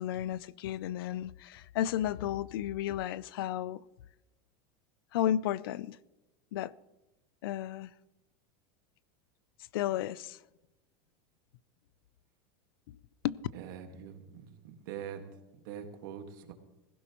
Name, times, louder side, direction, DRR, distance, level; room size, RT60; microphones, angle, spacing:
voice 1, 0.0-3.8 5.1-6.0 6.5-6.7 7.4-7.9 9.7-10.4 12.9-13.0 13.2-13.4, left 11 dB, 90° left, 0.4 m, -33 dB
voice 2, 13.5-14.6 14.8-15.3 15.6-16.5, right 8 dB, 65° right, 1.7 m, -43 dB
17.5 x 15.5 x 3.0 m
supercardioid pair, 155°, 12 cm